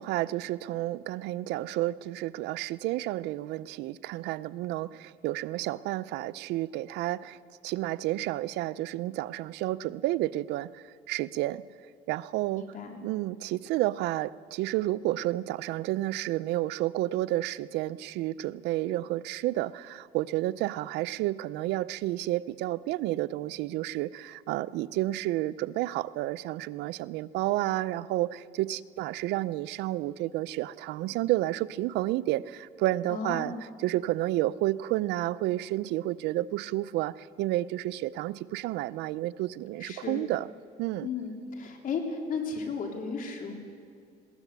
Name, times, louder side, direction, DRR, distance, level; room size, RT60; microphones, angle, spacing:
voice 1, 0.0-7.4 7.6-11.6 12.1-12.6 13.0-33.5 33.8-40.5 40.8-41.1, right 16 dB, 85° right, 17 dB, 0.5 m, -31 dB
voice 2, 12.5-13.0 33.1-33.6 39.8-40.2 41.0-43.5, left 5 dB, 55° left, 2 dB, 3.5 m, -34 dB
20.5 x 17.5 x 8.1 m, 2.3 s
cardioid pair, 110°, 17 cm